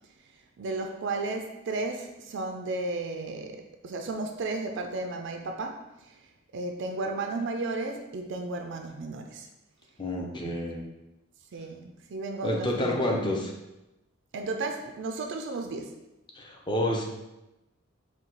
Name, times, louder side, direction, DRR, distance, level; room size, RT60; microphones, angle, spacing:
voice 1, 0.6-6.2 6.5-9.5 10.4-10.6 11.5-13.0 14.3-16.0, right 3 dB, 60° right, 4 dB, 0.4 m, -34 dB
voice 2, 10.0-10.8 12.4-13.5 16.3-17.0, left 1 dB, 20° left, 0 dB, 0.6 m, -29 dB
4.5 x 2.3 x 3.9 m, 0.96 s
head